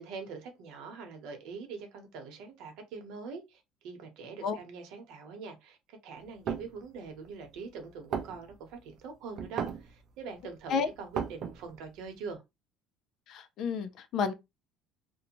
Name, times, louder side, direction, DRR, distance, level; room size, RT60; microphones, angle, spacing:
voice 1, 0.0-12.4, right 5 dB, 75° right, 0.9 m, -44 dB
sound 1, 6.2-6.7 7.4-7.5 7.9-8.0 8.1-8.8 9.4-9.9 10.4-10.5 10.6-11.8, right 7 dB, 45° right, 0.5 m, -35 dB
voice 2, 13.3-14.3, left 6 dB, 55° left, 0.4 m, -31 dB
2.6 x 2.2 x 2.9 m
cardioid pair, 145°, 0 cm